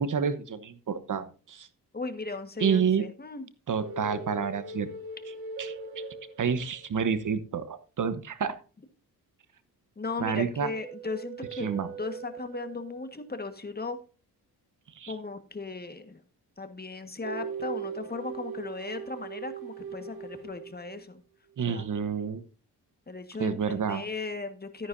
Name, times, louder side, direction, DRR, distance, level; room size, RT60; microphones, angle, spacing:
voice 1, 0.0-1.7 2.6-3.0 3.7-4.9 5.6-5.7 6.4-8.6 10.2-10.7 11.5-11.9 15.0-15.1 21.6-22.4 23.4-24.0, right 6 dB, 55° right, 13 dB, 1.1 m, -29 dB
voice 2, 1.9-3.5 10.0-14.0 15.1-16.2 16.6-21.2 21.7-21.9 23.1-24.9, left 3 dB, 25° left, 8 dB, 1.6 m, -37 dB
sound 1, 3.8-7.0 10.5-13.1 17.2-21.0, right 4 dB, 70° right, 1.7 m, -40 dB
13.0 x 10.0 x 2.7 m, 0.35 s
cardioid pair, 80°, 38 cm